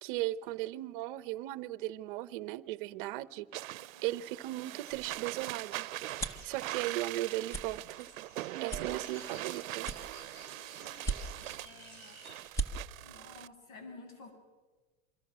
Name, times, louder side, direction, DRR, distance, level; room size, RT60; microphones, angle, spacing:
voice 1, 0.0-3.5 4.0-5.9 6.4-8.1 8.6-9.9, right 16 dB, 40° right, 0.8 m, -37 dB
sound 1, 3.5-13.5, right 17 dB, 90° right, 0.7 m, -42 dB
voice 2, 3.8-4.2 8.9-9.1 10.0-12.2 12.6-14.3, left 3 dB, 85° left, 7.6 m, -54 dB
sound 2, 4.8-12.4, left 1 dB, 40° left, 7.5 m, -56 dB
sound 3, 4.9-6.5 7.0-7.2 7.5-7.7 8.1-8.2 8.7-9.4 9.8-10.5 10.9-11.6 12.0-12.1 12.4-12.7, right 3 dB, 5° left, 0.7 m, -37 dB
27.5 x 24.0 x 6.2 m
supercardioid pair, 170°, 40 cm